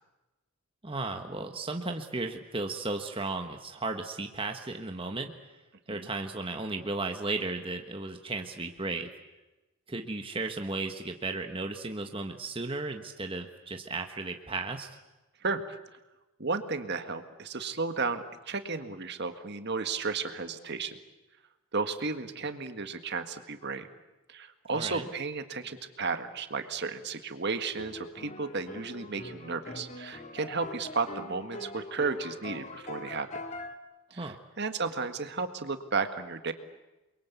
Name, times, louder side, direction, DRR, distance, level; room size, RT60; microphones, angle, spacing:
voice 1, 0.8-5.3 5.9-9.1 9.9-14.9 24.7-25.1 34.1-34.4, right 3 dB, 25° right, 4 dB, 1.4 m, -35 dB
voice 2, 16.4-21.0 21.7-23.9 24.3-33.3 34.1-36.5, right 4 dB, 50° right, 8 dB, 1.8 m, -33 dB
sound 1, 27.8-33.7, left 2 dB, 30° left, 2.3 m, -43 dB
29.0 x 23.0 x 8.3 m, 1.1 s
head